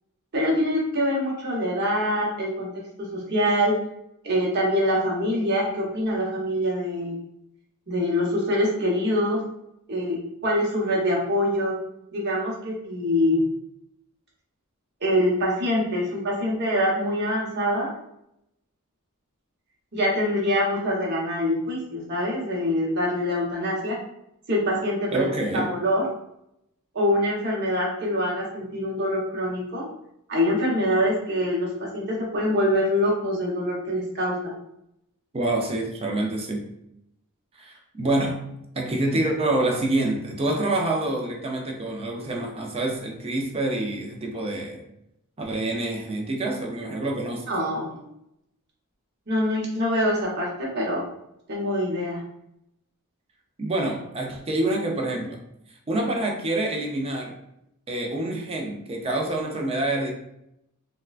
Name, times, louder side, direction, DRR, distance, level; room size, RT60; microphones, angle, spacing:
voice 1, 0.3-2.7 3.0-3.8 4.2-7.1 7.9-9.4 9.9-11.7 12.1-13.4 15.0-17.9 19.9-24.0 24.5-25.2 25.5-26.0 26.9-29.9 30.3-34.5 47.5-48.0 49.3-51.1 51.5-52.2, equal, 50° right, -3 dB, 1.0 m, -24 dB
voice 2, 25.1-25.7 35.3-36.7 37.6-38.4 38.7-44.8 45.4-47.5 53.6-55.4 55.9-57.4 57.9-60.1, right 2 dB, 25° right, 1 dB, 0.5 m, -27 dB
3.5 x 2.2 x 2.4 m, 0.80 s
head